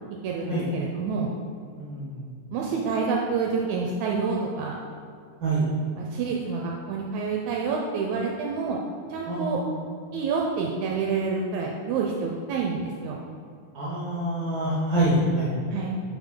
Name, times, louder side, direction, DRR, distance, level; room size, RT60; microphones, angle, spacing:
voice 1, 0.2-1.3 2.5-4.8 6.0-8.8 9.1-9.6 10.1-13.2 15.7-16.0, right 5 dB, 80° right, -1 dB, 1.9 m, -28 dB
voice 2, 1.8-2.2 5.4-5.6 9.3-9.7 13.7-15.5, right 1 dB, 50° right, -8 dB, 1.7 m, -26 dB
8.4 x 5.1 x 3.7 m, 2.4 s
omnidirectional pair, 3.4 m